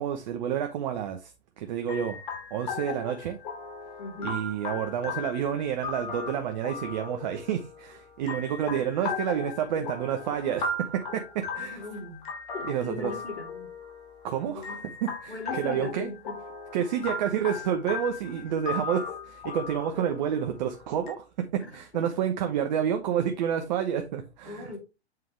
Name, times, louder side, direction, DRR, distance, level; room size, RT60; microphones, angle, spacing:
voice 1, 0.0-2.2 2.5-3.4 4.2-11.8 12.7-13.1 14.2-16.1 16.7-24.7, right 9 dB, 40° right, 1.0 m, -29 dB
sound 1, 1.9-21.1, left 4 dB, 45° left, 2.4 m, -37 dB
voice 2, 4.0-4.4 11.7-12.3 12.5-13.7 14.5-14.8 15.3-16.4 21.6-22.0 24.5-24.8, left 3 dB, 70° left, 4.0 m, -39 dB
7.7 x 5.5 x 3.3 m
figure-of-eight pair, 125°, 33 cm